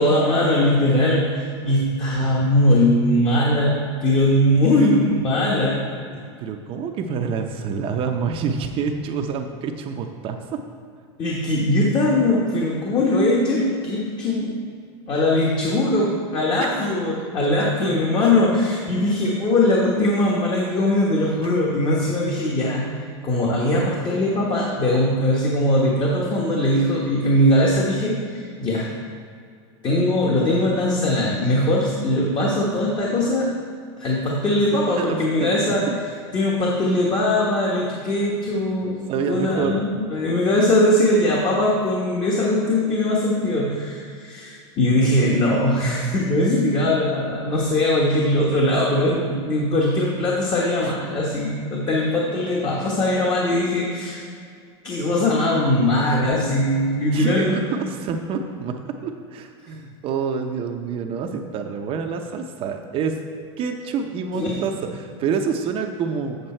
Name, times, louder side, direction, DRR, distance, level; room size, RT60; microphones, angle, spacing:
voice 1, 0.0-5.8 6.1-6.2 11.2-14.5 15.1-22.8 23.2-28.9 29.8-33.5 34.0-35.8 36.3-39.0 39.3-54.2 54.8-57.6 64.3-64.6, left 1 dB, 30° left, -3 dB, 1.2 m, -20 dB
voice 2, 6.4-10.6 16.6-16.9 17.6-18.0 35.0-35.9 39.1-39.8 50.8-50.9 56.0-56.2 57.1-58.8 59.0-63.2 63.6-66.4, right 6 dB, 40° right, 4 dB, 0.7 m, -27 dB
8.0 x 6.7 x 4.4 m, 2.2 s
supercardioid pair, 125°, 15 cm